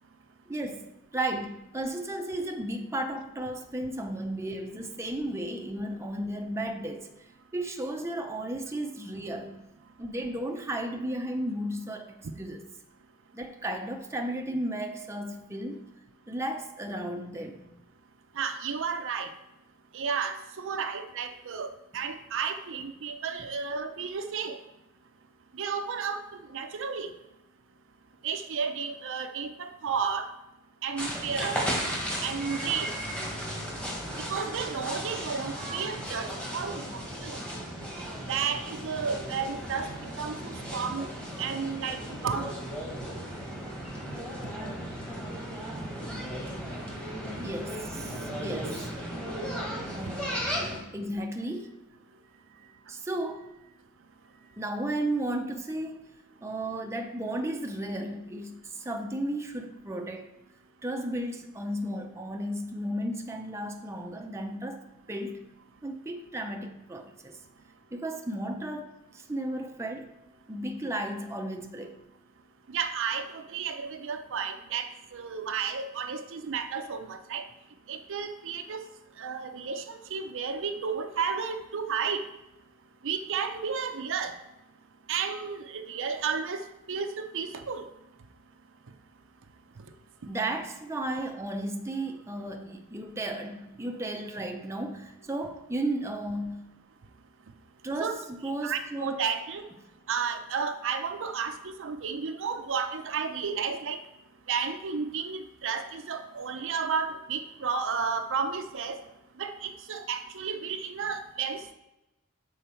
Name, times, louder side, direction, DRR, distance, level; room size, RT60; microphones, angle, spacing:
voice 1, 0.5-9.6 10.0-12.6 13.3-15.8 16.3-17.8 47.4-48.9 49.9-50.4 50.9-51.8 52.5-53.5 54.5-56.0 56.4-60.3 60.8-64.8 65.1-65.4 65.8-67.4 67.9-70.1 70.5-71.9 90.3-96.7 97.8-99.2, right 1 dB, 10° right, 3 dB, 0.5 m, -34 dB
voice 2, 18.4-19.3 19.9-21.7 21.9-24.6 25.5-26.2 26.5-27.1 28.2-30.3 30.8-31.6 32.2-32.9 34.3-37.4 38.3-41.1 41.4-42.5 72.7-77.4 77.9-78.8 79.2-82.2 83.0-84.3 85.1-87.8 98.0-98.1 98.6-99.7 100.1-104.0 104.5-109.0 109.4-111.7, right 6 dB, 60° right, 8 dB, 0.5 m, -32 dB
sound 1, 31.0-50.8, equal, 5° left, 1.3 m, -35 dB
6.9 x 4.6 x 4.4 m, 0.92 s
head